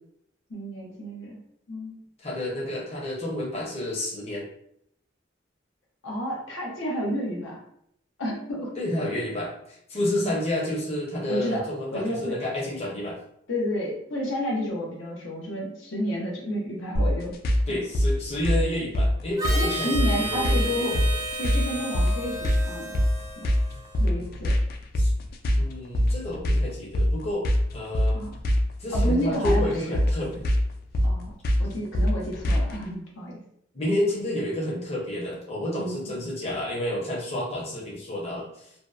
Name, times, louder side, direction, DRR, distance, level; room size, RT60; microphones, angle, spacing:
voice 1, 0.5-1.4 1.7-2.0 6.0-7.6 8.2-8.8 10.1-10.3 11.3-11.7 11.9-12.4 13.5-17.3 17.7-17.8 19.5-21.0 21.4-23.0 23.4-23.5 24.0-24.5 28.1-28.3 28.9-30.0 31.0-31.3 31.6-33.4 35.8-36.1, equal, 85° left, -2 dB, 0.7 m, -30 dB
voice 2, 2.2-4.5 8.8-13.2 17.7-21.0 24.9-25.1 25.6-27.5 27.7-28.2 28.8-30.4 33.7-38.7, left 1 dB, 35° left, -5 dB, 0.7 m, -30 dB
sound 1, 16.9-32.8, equal, 50° left, 0.3 m, -24 dB
Harmonica, 19.4-24.1, right 2 dB, 20° right, 0.4 m, -33 dB
2.6 x 2.0 x 2.3 m, 0.72 s
head